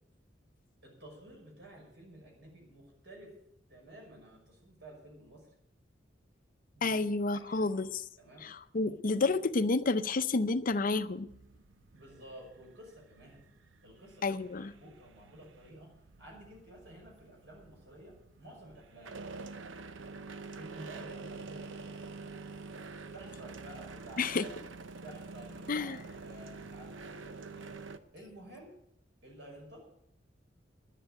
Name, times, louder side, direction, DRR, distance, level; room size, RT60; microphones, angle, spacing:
voice 1, 0.8-3.3 3.7-5.5 6.7-7.0 7.3-7.7 8.2-8.5 11.9-13.4 13.8-15.9 16.2-19.2 20.6-22.1 23.1-24.5 25.0-27.7 28.1-28.8 29.2-29.8, right 1 dB, 65° right, 6.0 m, -52 dB
voice 2, 6.8-8.1 8.4-11.3 14.2-14.7 24.2-24.5 25.7-26.0, left 3 dB, 45° left, 0.6 m, -30 dB
sound 1, 11.3-28.0, right 4 dB, 85° right, 0.8 m, -47 dB
10.5 x 10.0 x 8.9 m
head